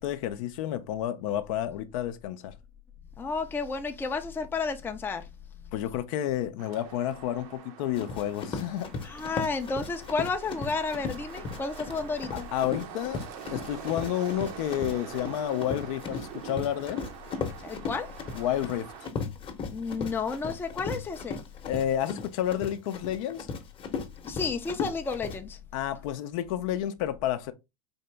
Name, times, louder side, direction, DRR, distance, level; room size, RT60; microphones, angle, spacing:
voice 1, 0.0-2.5 5.7-8.9 12.3-13.2 13.5-17.0 18.3-18.9 21.7-23.5 25.7-27.5, left 11 dB, 60° left, 0.6 m, -30 dB
voice 2, 3.2-5.2 9.0-12.5 17.6-18.1 19.7-21.4 24.2-25.6, left 4 dB, 10° left, 0.5 m, -31 dB
sound 1, 6.6-19.1, right 9 dB, 60° right, 0.8 m, -45 dB
Run, 7.9-25.4, left 5 dB, 25° left, 0.9 m, -37 dB
4.3 x 2.9 x 3.3 m
hypercardioid pair, 115°, 19 cm